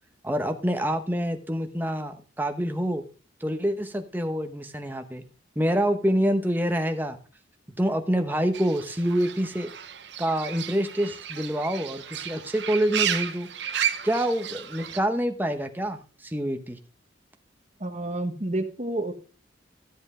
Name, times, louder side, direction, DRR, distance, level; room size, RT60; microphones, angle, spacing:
voice 1, 0.2-3.0 3.4-5.2 5.6-7.2 7.8-9.7 10.2-13.5 14.0-16.8, equal, 10° right, 5 dB, 0.9 m, -26 dB
Fowl / Bird, 8.5-15.0, right 9 dB, 60° right, 0.8 m, -33 dB
voice 2, 17.8-19.1, right 1 dB, 35° right, 7 dB, 1.1 m, -29 dB
13.0 x 7.9 x 3.7 m, 0.36 s
head